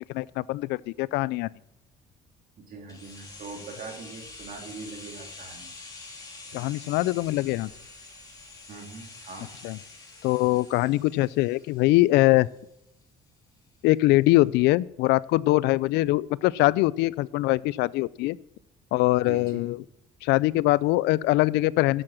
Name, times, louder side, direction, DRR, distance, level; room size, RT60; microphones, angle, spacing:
voice 1, 0.1-1.5 6.5-7.7 9.6-9.8 10.2-12.5 13.8-18.4 18.9-19.8 20.2-22.0, left 18 dB, 90° left, 21 dB, 0.4 m, -23 dB
voice 2, 2.6-5.7 8.7-9.5 19.2-19.6, right 4 dB, 55° right, 2 dB, 3.1 m, -42 dB
sound 1, 2.9-12.7 13.0-13.1, left 3 dB, 20° left, 3.0 m, -46 dB
11.0 x 7.8 x 7.4 m, 0.82 s
cardioid pair, 110°, 17 cm